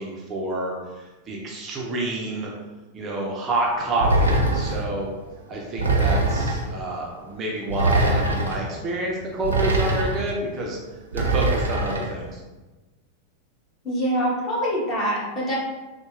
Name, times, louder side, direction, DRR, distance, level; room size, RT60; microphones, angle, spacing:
voice 1, 0.0-2.5 2.9-5.1 5.5-10.8 11.1-12.4, right 2 dB, 25° right, -2 dB, 0.5 m, -28 dB
sound 1, 4.0-4.9 5.8-6.7 7.7-8.6 9.4-10.3 11.1-12.1, right 2 dB, 75° right, 0.5 m, -22 dB
voice 2, 13.8-15.6, equal, 25° left, -6 dB, 1.2 m, -24 dB
3.9 x 2.2 x 2.4 m, 1.2 s
figure-of-eight pair, 90°, 0 cm